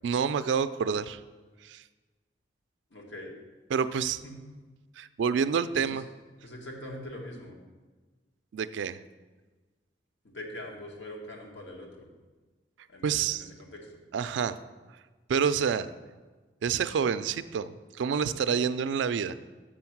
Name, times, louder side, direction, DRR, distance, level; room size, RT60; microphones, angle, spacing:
voice 1, 0.0-1.2 1.6-1.8 3.7-4.2 5.0-6.1 8.5-9.0 13.0-13.5 14.1-14.6 15.3-15.9 16.6-19.3, right 6 dB, 90° right, 13 dB, 0.3 m, -28 dB
voice 2, 2.9-3.3 4.0-4.3 5.7-6.0 6.4-7.6 10.2-12.1 12.9-14.0, left 1 dB, 85° left, -1 dB, 1.6 m, -43 dB
6.4 x 6.2 x 5.9 m, 1.3 s
head